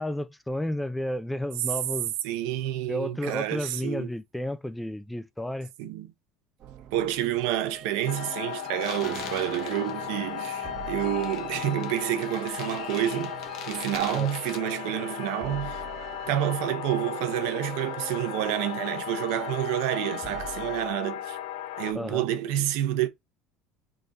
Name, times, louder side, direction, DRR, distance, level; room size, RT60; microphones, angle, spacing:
voice 1, 0.0-2.1 2.9-5.7 14.1-14.3 21.9-22.2, left 1 dB, 5° left, 0.3 m, -32 dB
voice 2, 2.2-4.1 5.8-6.1 6.9-13.4 13.7-15.8 16.3-21.4 21.8-23.1, right 12 dB, 80° right, 0.8 m, -29 dB
sound 1, 6.6-20.9, right 8 dB, 45° right, 0.8 m, -44 dB
sound 2, 8.1-21.9, left 11 dB, 80° left, 0.4 m, -36 dB
sound 3, 8.8-14.6, left 7 dB, 60° left, 0.9 m, -43 dB
3.8 x 2.7 x 3.9 m
cardioid pair, 125°, 0 cm